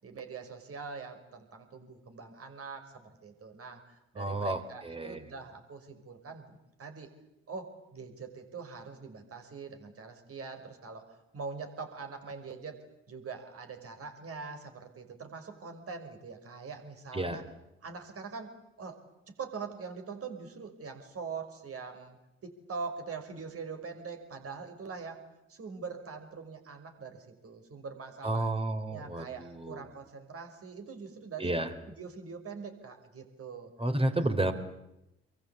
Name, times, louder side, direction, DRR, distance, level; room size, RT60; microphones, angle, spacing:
voice 1, 0.0-7.1 7.5-17.4 17.8-22.2 22.4-25.2 25.5-28.5 28.9-31.6 32.0-33.7 34.1-34.3, right 5 dB, 45° right, 5 dB, 5.7 m, -43 dB
voice 2, 4.2-5.2 17.1-17.4 28.2-29.8 31.4-31.7 33.8-34.5, right 1 dB, 15° right, 7 dB, 3.4 m, -31 dB
28.5 x 23.0 x 8.6 m, 0.91 s
figure-of-eight pair, 50°, 32 cm